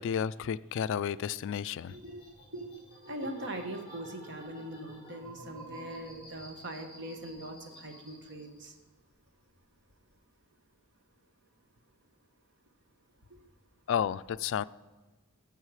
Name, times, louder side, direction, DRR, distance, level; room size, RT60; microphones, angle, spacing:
voice 1, 0.0-1.9 13.9-14.6, left 8 dB, 60° left, 16 dB, 0.3 m, -31 dB
sound 1, 1.8-8.8 9.1-9.9, right 1 dB, 15° right, 3.7 m, -51 dB
voice 2, 1.9-2.2 2.5-2.7 3.0-8.7, right 1 dB, 55° right, 5 dB, 1.3 m, -41 dB
15.5 x 5.6 x 4.8 m, 1.3 s
head